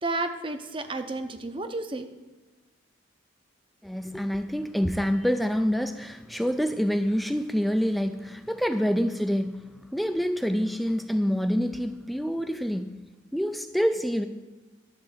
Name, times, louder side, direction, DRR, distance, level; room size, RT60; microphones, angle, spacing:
voice 1, 0.0-2.1, right 2 dB, 25° right, 8 dB, 0.7 m, -31 dB
voice 2, 3.8-13.0 13.3-14.3, equal, ahead, 8 dB, 0.3 m, -27 dB
12.0 x 4.3 x 7.9 m, 1.2 s
head